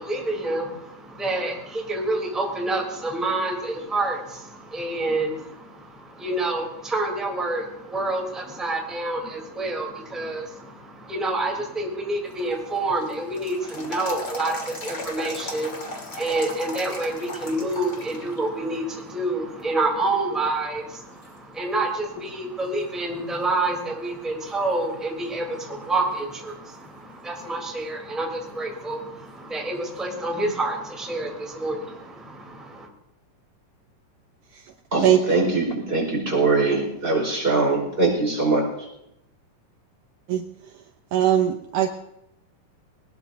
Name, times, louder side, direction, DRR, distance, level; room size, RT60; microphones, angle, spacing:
voice 1, 0.0-32.9, right 2 dB, ahead, -1 dB, 3.1 m, -28 dB
sound 1, 12.3-18.4 18.8-18.9 19.6-20.1 20.7-20.8 21.2-22.5 22.8-22.9 26.2-26.3 29.3-29.4, left 2 dB, 35° left, 2.6 m, -37 dB
voice 2, 34.9-38.9, right 3 dB, 15° right, 0 dB, 4.9 m, -22 dB
voice 3, 41.1-41.9, right 11 dB, 75° right, 5 dB, 2.2 m, -20 dB
21.5 x 20.0 x 2.8 m, 0.83 s
omnidirectional pair, 3.9 m